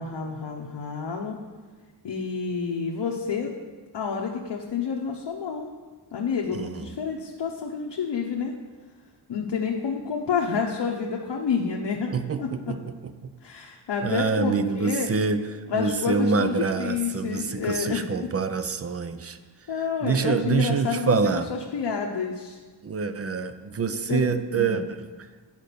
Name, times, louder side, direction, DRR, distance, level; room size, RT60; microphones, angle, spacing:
voice 1, 0.0-1.4 2.0-3.5 3.9-5.7 6.1-8.5 9.3-12.7 13.4-15.1 15.7-18.0 19.7-21.2 21.5-22.6 23.9-24.8, left 6 dB, 70° left, 0 dB, 0.9 m, -29 dB
voice 2, 6.5-6.8 12.1-12.8 13.0-13.1 14.0-15.4 15.7-19.4 20.0-21.5 22.8-24.8, right 5 dB, 35° right, 11 dB, 0.5 m, -26 dB
9.7 x 5.2 x 6.7 m, 1.4 s
wide cardioid pair, 160°, 43 cm